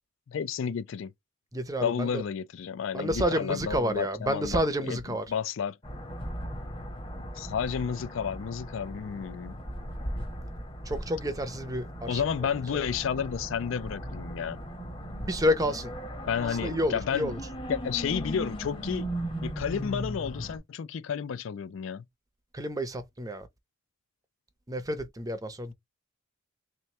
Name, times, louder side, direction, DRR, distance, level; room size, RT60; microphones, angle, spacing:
voice 1, 0.3-1.1 1.8-5.8 7.1-9.6 12.1-14.6 16.3-17.3 17.7-19.1 19.4-22.1, left 7 dB, 65° left, 0.3 m, -31 dB
voice 2, 1.5-2.2 2.9-5.2 10.9-12.2 12.7-12.8 15.2-15.9 16.6-17.4 22.5-23.5 24.7-25.7, equal, 15° right, 0.6 m, -29 dB
sound 1, 5.8-20.6, equal, 25° left, 1.0 m, -38 dB
3.2 x 3.0 x 3.2 m
head